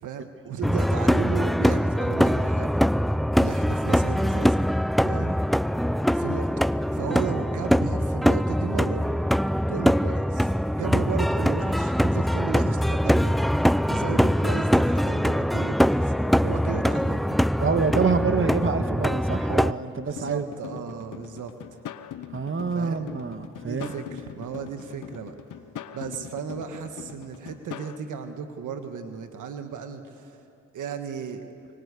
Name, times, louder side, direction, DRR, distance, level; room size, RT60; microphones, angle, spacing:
voice 1, 0.0-2.8 3.4-4.6 5.0-5.4 6.1-6.7 6.9-9.0 9.7-16.1 16.4-17.4 20.0-21.5 22.7-23.1 23.6-25.3 25.9-30.4 30.7-31.4, right 7 dB, 85° right, 7 dB, 1.6 m, -35 dB
sound 1, 0.6-19.7, equal, ahead, 0.5 m, -23 dB
voice 2, 17.6-20.5 22.3-23.9, right 5 dB, 45° right, 8 dB, 1.7 m, -26 dB
sound 2, 20.2-28.0, left 10 dB, 85° left, 1.0 m, -41 dB
25.0 x 23.5 x 8.3 m, 2.6 s
cardioid pair, 50°, 30 cm